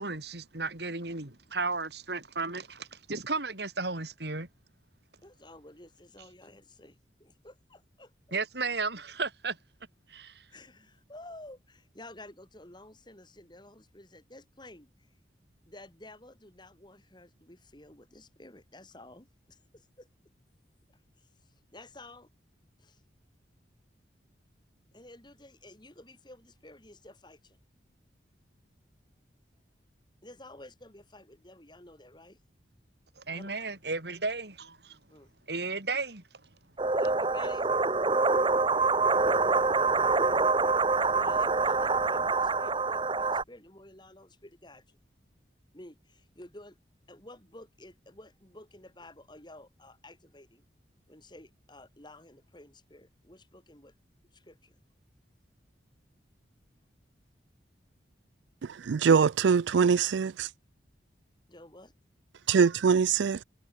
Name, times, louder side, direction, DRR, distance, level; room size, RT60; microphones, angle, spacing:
voice 1, 0.0-4.5 8.3-9.6 10.1-10.5 33.2-35.0 35.5-36.2, right 3 dB, 65° right, 3.7 m, -34 dB
voice 2, 5.2-8.4 10.5-15.1 15.7-20.1 21.2-22.3 22.8-23.0 24.9-27.6 30.2-32.4 33.3-33.5 35.1-35.3 36.9-37.7 41.0-45.0 45.7-46.8 47.1-50.6 51.1-53.9 54.3-54.8 61.5-61.9, left 1 dB, 25° left, 4.1 m, -52 dB
sound 1, 36.8-43.4, right 3 dB, 25° right, 1.0 m, -25 dB
voice 3, 58.8-60.5 62.5-63.4, right 6 dB, 80° right, 0.4 m, -23 dB
head